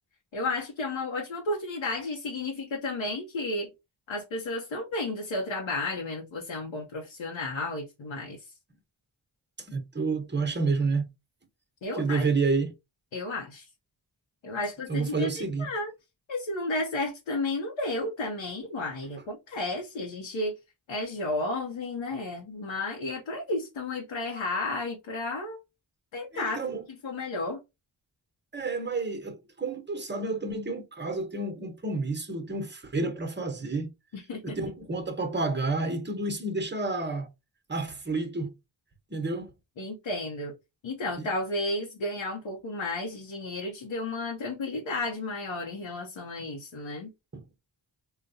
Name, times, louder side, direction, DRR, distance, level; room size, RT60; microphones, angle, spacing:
voice 1, 0.3-3.7 4.1-8.5 11.8-12.3 13.1-13.7 14.4-15.9 16.3-20.5 20.9-25.6 26.1-27.6 34.1-34.6 39.8-40.5 40.8-47.1, left 2 dB, 85° left, 0.8 m, -32 dB
voice 2, 9.7-11.1 11.9-12.7 14.9-15.7 26.3-26.8 28.5-33.9 34.4-37.3 37.7-38.5 39.1-39.5 41.2-41.3 47.3-47.4, right 3 dB, 25° right, 0.9 m, -30 dB
3.9 x 2.2 x 2.6 m
wide cardioid pair, 70°, 46 cm